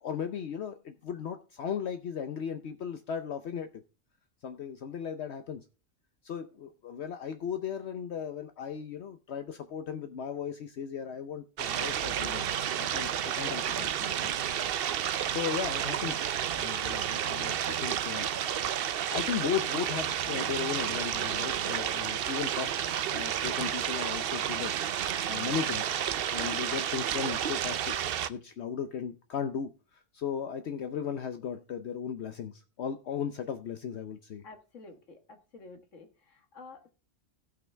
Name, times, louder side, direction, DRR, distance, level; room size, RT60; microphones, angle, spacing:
voice 1, 0.0-3.7 4.4-5.6 6.2-14.3 15.3-18.7 19.1-22.7 23.1-25.9 26.3-28.0 28.3-34.4, left 7 dB, 65° left, 1.0 m, -36 dB
sound 1, 11.6-28.3, right 9 dB, 60° right, 0.7 m, -31 dB
voice 2, 34.4-36.9, left 3 dB, 90° left, 1.9 m, -50 dB
16.0 x 5.9 x 3.3 m
omnidirectional pair, 1.3 m